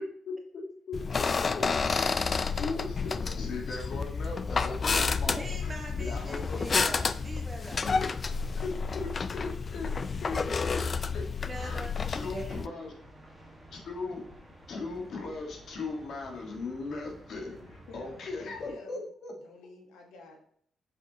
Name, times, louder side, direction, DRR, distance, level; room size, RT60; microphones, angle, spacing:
voice 1, 0.2-1.3 1.5-5.7 6.0-6.6 7.8-8.2 8.5-9.9 10.2-10.8 11.1-11.2 11.6-12.9 13.7-14.2 14.7-17.5 17.9-19.3, left 3 dB, 65° left, 1 dB, 1.5 m, -38 dB
sound 1, 0.9-12.7, left 5 dB, 40° left, 0.3 m, -30 dB
voice 2, 5.3-7.8 11.4-11.9 12.3-12.8, right 2 dB, 25° right, 2 dB, 1.4 m, -43 dB
sound 2, 12.8-18.7, equal, 10° right, 1.6 m, -52 dB
voice 3, 17.5-19.0 19.4-20.4, left 2 dB, 90° left, 2 dB, 1.3 m, -50 dB
6.5 x 5.5 x 2.9 m, 0.63 s
cardioid pair, 90°, 0 cm